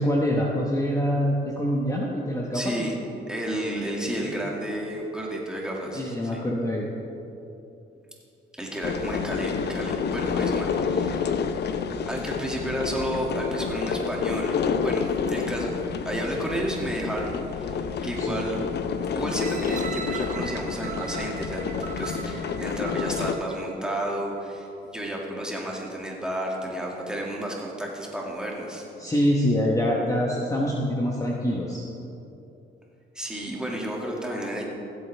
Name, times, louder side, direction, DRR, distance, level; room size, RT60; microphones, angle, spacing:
voice 1, 0.0-2.9 5.9-6.9 18.2-18.4 29.0-31.8, equal, 15° left, -3 dB, 1.2 m, -25 dB
voice 2, 2.5-3.0 3.3-6.4 8.6-11.3 12.1-15.7 16.0-18.6 19.1-28.9 33.1-34.6, right 1 dB, 5° right, -2 dB, 2.1 m, -32 dB
sound 1, 8.8-23.3, left 6 dB, 60° left, 0.6 m, -29 dB
sound 2, 19.3-24.3 24.9-25.0, right 6 dB, 40° right, 0.9 m, -39 dB
16.5 x 7.9 x 3.4 m, 2.8 s
cardioid pair, 90°, 20 cm